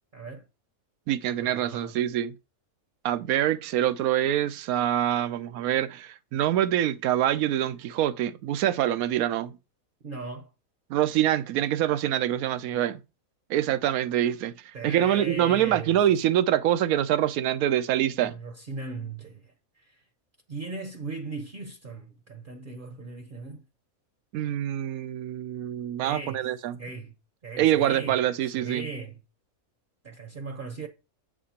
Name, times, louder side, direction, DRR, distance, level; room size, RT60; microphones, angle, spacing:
voice 1, 0.1-0.5 1.4-2.0 10.0-10.5 14.7-16.1 18.2-20.0 20.5-23.6 26.0-26.5 26.8-27.2 27.4-28.2 28.5-29.2 30.0-30.9, right 3 dB, 45° right, 0.8 m, -38 dB
voice 2, 1.1-2.3 3.0-9.5 10.9-13.0 13.5-14.5 14.8-18.3 24.3-26.8 27.6-28.8, right 11 dB, 90° right, 1.1 m, -25 dB
7.5 x 7.5 x 2.8 m
omnidirectional pair, 1.5 m